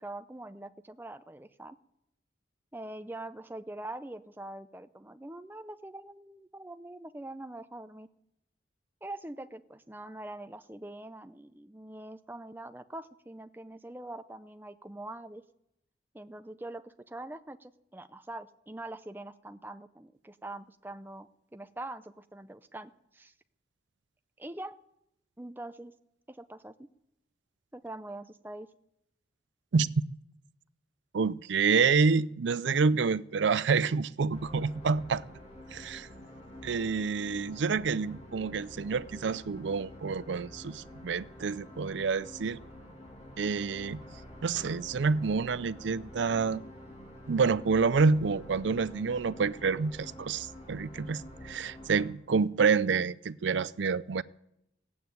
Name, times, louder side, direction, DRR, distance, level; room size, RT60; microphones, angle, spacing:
voice 1, 0.0-1.8 2.7-8.1 9.0-15.4 16.1-23.3 24.4-24.8 25.4-25.9 26.3-26.9 27.7-28.7, right 1 dB, 10° right, 0.5 m, -43 dB
voice 2, 31.1-35.2 35.7-36.1 36.6-42.6 43.4-44.0 44.4-46.6 47.3-54.2, right 5 dB, 75° right, 0.5 m, -28 dB
sound 1, 34.3-52.1, left 1 dB, 35° left, 2.6 m, -48 dB
16.5 x 8.6 x 9.3 m
head